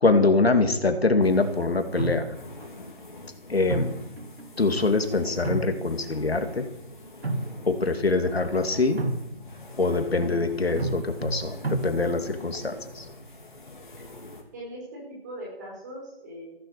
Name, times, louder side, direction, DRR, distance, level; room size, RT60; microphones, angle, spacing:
voice 1, 0.0-2.3 3.5-4.0 4.6-6.7 7.6-9.0 9.8-13.1, left 3 dB, 80° left, 7 dB, 2.6 m, -24 dB
sound 1, 0.6-1.1 1.9-2.7 3.7-4.8 5.2-6.4 7.0-7.9 9.0-9.7 10.8-12.4, right 2 dB, 80° right, 2.9 m, -32 dB
sound 2, 1.2-14.4, left 2 dB, 55° left, 3.5 m, -44 dB
voice 2, 14.5-16.5, right 1 dB, 20° right, -3 dB, 5.1 m, -40 dB
15.5 x 12.0 x 6.7 m, 0.81 s
figure-of-eight pair, 175°, 30 cm